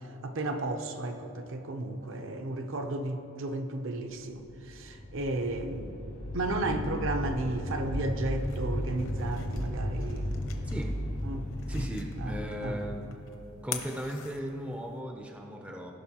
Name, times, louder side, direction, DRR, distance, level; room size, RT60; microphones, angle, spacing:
voice 1, 0.2-5.9 6.3-10.3 11.2-11.9 12.2-12.8, right 2 dB, 60° right, 6 dB, 0.6 m, -33 dB
sound 1, 4.3-14.1, equal, 90° left, 1.8 m, -35 dB
sound 2, 8.0-15.0, left 9 dB, 65° left, 0.8 m, -46 dB
voice 2, 10.6-10.9 11.7-13.1 13.6-15.9, equal, 5° right, 2 dB, 0.4 m, -37 dB
16.0 x 5.7 x 2.8 m, 2.9 s
head